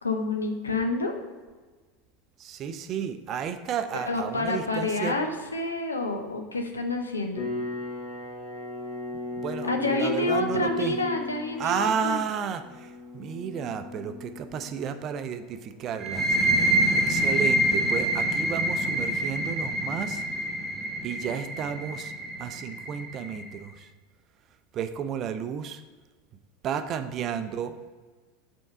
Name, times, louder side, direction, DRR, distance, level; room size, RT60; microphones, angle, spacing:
voice 1, 0.0-1.1 4.1-7.5 9.6-12.2, left 2 dB, 85° left, 4 dB, 0.7 m, -28 dB
voice 2, 2.4-5.2 9.4-11.0 11.6-16.4 16.9-20.2 21.0-22.1 22.4-23.9 24.7-25.8 26.6-27.9, right 7 dB, 40° right, 10 dB, 0.5 m, -32 dB
sound 1, 7.3-18.4, left 3 dB, 40° left, 1.3 m, -38 dB
sound 2, 16.0-23.4, right 1 dB, 10° right, 1.3 m, -26 dB
5.4 x 3.6 x 5.7 m, 1.4 s
figure-of-eight pair, 80°, 0 cm